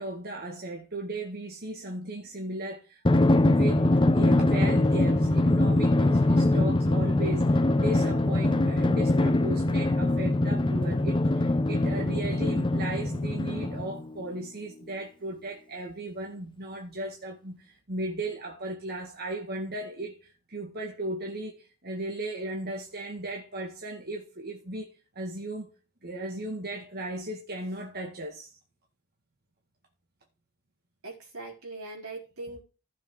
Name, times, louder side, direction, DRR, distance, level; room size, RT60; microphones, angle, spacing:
voice 1, 0.0-25.7 26.0-28.5, right 1 dB, 50° right, 1.8 m, -36 dB
Drum, 3.0-14.1, left 2 dB, 25° left, 0.6 m, -23 dB
voice 2, 31.0-32.6, right 2 dB, 80° right, 3.9 m, -40 dB
14.5 x 6.9 x 3.8 m
head